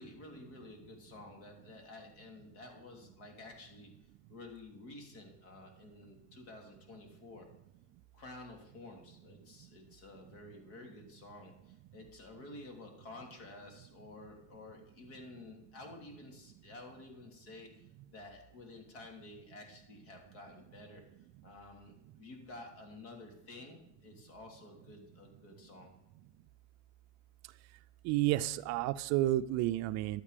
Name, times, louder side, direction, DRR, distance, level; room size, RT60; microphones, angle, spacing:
voice 1, 0.0-4.0 4.3-7.5 8.1-21.1 21.4-25.9, left 2 dB, 65° left, 2 dB, 3.1 m, -51 dB
voice 2, 28.0-30.2, right 15 dB, 45° right, 13 dB, 0.4 m, -31 dB
11.5 x 8.7 x 5.1 m, 0.87 s
supercardioid pair, 125°, 38 cm